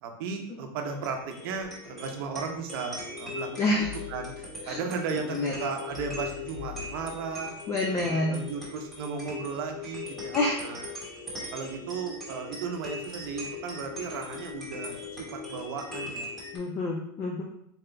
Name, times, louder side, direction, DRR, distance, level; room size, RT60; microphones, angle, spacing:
voice 1, 0.0-3.5 4.1-4.3 4.7-7.5 7.9-10.8 11.5-16.3, right 5 dB, 65° right, 4 dB, 0.7 m, -35 dB
sound 1, 0.8-16.6, left 3 dB, ahead, 1.3 m, -40 dB
voice 2, 3.6-3.9 4.6-4.8 5.1-5.5 7.7-8.4 10.3-10.6 16.5-17.4, left 2 dB, 20° left, 0 dB, 0.4 m, -28 dB
sound 2, 3.8-7.5, left 9 dB, 40° left, 0.8 m, -45 dB
4.2 x 3.7 x 2.2 m, 0.72 s
supercardioid pair, 160°, 13 cm